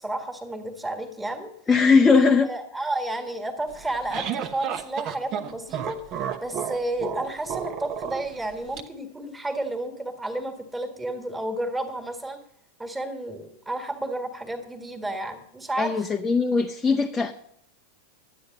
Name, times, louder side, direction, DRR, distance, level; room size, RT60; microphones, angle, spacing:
voice 1, 0.0-1.5 2.5-6.0 6.4-12.4 12.8-16.0, right 1 dB, 10° right, 5 dB, 1.9 m, -31 dB
voice 2, 1.7-2.5 15.8-17.3, left 4 dB, 15° left, 3 dB, 0.7 m, -19 dB
sound 1, 3.7-8.8, right 9 dB, 35° right, 0.9 m, -32 dB
12.0 x 9.3 x 6.6 m, 0.74 s
figure-of-eight pair, 90°, 0 cm